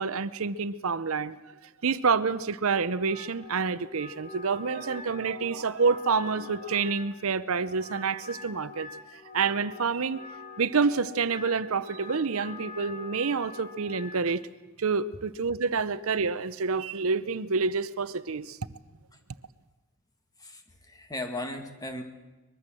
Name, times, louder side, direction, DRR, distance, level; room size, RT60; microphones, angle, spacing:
voice 1, 0.0-1.5 1.8-10.2 10.6-14.4 14.8-18.6, right 5 dB, 70° right, 0.7 m, -28 dB
Wind instrument woodwind instrument, 2.6-14.3, left 3 dB, 35° left, 2.8 m, -45 dB
voice 2, 20.4-22.0, left 1 dB, 15° left, 2.2 m, -37 dB
23.5 x 22.0 x 7.6 m
head